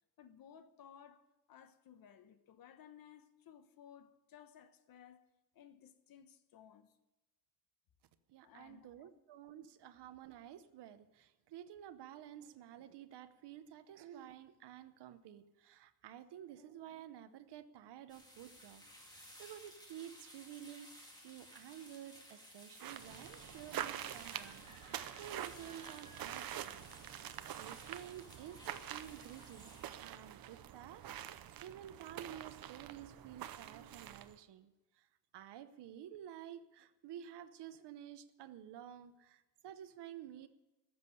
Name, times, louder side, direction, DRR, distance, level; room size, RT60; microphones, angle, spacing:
voice 1, 0.2-1.2 1.5-5.3 5.5-7.0 8.4-9.1 9.8-9.9, left 9 dB, 60° left, 1.1 m, -59 dB
voice 2, 8.3-18.8 19.1-20.9 21.2-26.9 27.6-34.7 35.3-40.5, right 10 dB, 90° right, 0.9 m, -52 dB
sound 1, 18.1-30.0, equal, 10° left, 2.1 m, -57 dB
sound 2, 22.8-34.4, right 11 dB, 60° right, 0.8 m, -46 dB
14.0 x 7.5 x 9.8 m
wide cardioid pair, 180°, 40 cm